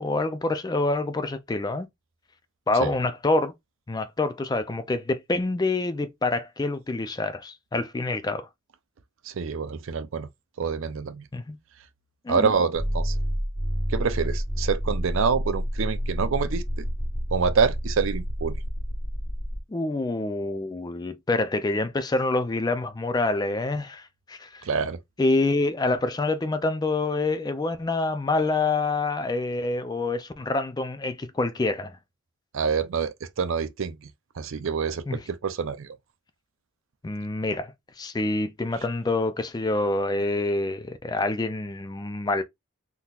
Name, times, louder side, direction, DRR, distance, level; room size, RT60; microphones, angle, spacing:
voice 1, 0.0-1.9 2.7-3.5 3.9-8.5 11.3-11.6 12.2-12.5 19.7-24.7 25.2-32.0 35.1-35.2 37.0-42.4, left 2 dB, 20° left, 0.3 m, -26 dB
voice 2, 9.3-10.3 10.6-11.2 12.3-13.1 13.9-16.8 17.3-18.6 24.6-25.0 32.5-34.1 34.4-36.0, right 5 dB, 65° right, 0.4 m, -26 dB
sound 1, 12.7-19.6, equal, 30° right, 0.9 m, -29 dB
3.7 x 2.8 x 2.3 m
head